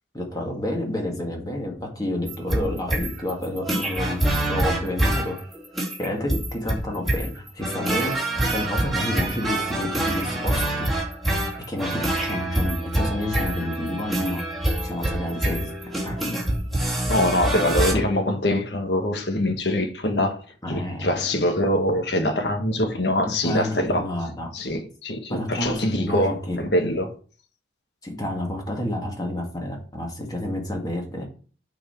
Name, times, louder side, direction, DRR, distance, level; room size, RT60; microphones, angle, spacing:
voice 1, 0.1-5.4 6.0-10.9 11.7-14.4 14.8-16.4 17.9-18.0 20.6-21.1 23.4-24.5 25.3-26.6 28.0-31.2, left 1 dB, 20° left, 2.0 m, -29 dB
sound 1, 2.3-17.9, right 1 dB, ahead, 2.5 m, -26 dB
voice 2, 17.1-20.4 20.7-24.1 24.5-27.1, left 1 dB, 70° left, 1.5 m, -24 dB
8.5 x 4.6 x 6.3 m
head